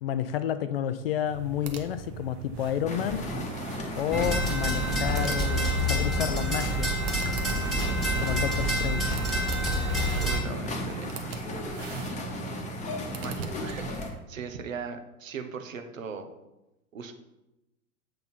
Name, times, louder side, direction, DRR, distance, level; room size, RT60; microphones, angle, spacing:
voice 1, 0.0-3.3 4.0-6.9 8.2-9.2, left 10 dB, 45° left, 0.4 m, -30 dB
sound 1, 1.2-14.2, right 7 dB, 35° right, 0.9 m, -41 dB
sound 2, 2.9-14.1, left 1 dB, 15° left, 1.0 m, -36 dB
sound 3, 4.1-10.4, equal, ahead, 1.9 m, -27 dB
voice 2, 10.2-11.2 13.2-16.3 16.9-17.1, right 5 dB, 65° right, 1.0 m, -38 dB
7.6 x 3.9 x 5.6 m
figure-of-eight pair, 95°, 43 cm